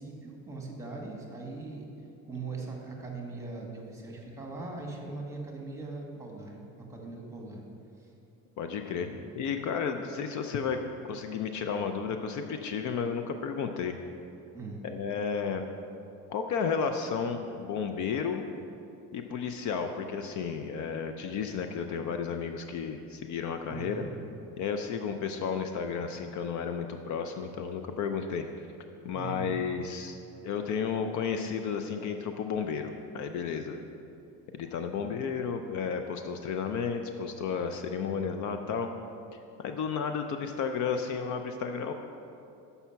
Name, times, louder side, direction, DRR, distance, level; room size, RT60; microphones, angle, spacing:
voice 1, 0.0-1.8 2.3-7.6 8.0-8.1 8.9-9.2 14.5-14.8 23.7-24.1 29.1-29.5, right 3 dB, 10° right, -1 dB, 1.3 m, -40 dB
voice 2, 8.6-9.1 9.4-10.8 11.1-14.0 14.8-15.6 16.3-18.4 19.1-24.0 24.6-28.7 29.0-33.8 34.5-38.9 39.6-41.9, left 6 dB, 55° left, 6 dB, 0.6 m, -32 dB
7.1 x 5.6 x 5.7 m, 2.6 s
cardioid pair, 125°, 35 cm